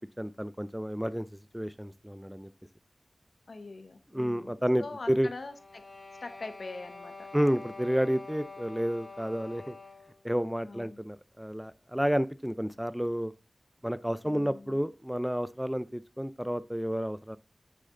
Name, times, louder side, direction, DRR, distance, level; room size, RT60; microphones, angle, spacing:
voice 1, 0.2-1.3 1.5-2.5 4.1-5.3 7.3-9.8 10.2-13.3 13.8-17.4, equal, 5° right, 0.4 m, -30 dB
voice 2, 3.5-5.9 6.2-7.3 10.6-11.0 14.2-14.8, left 3 dB, 60° left, 0.9 m, -43 dB
sound 1, 5.5-10.2, left 3 dB, 30° left, 3.5 m, -46 dB
9.5 x 6.6 x 3.8 m
wide cardioid pair, 95°, 0 cm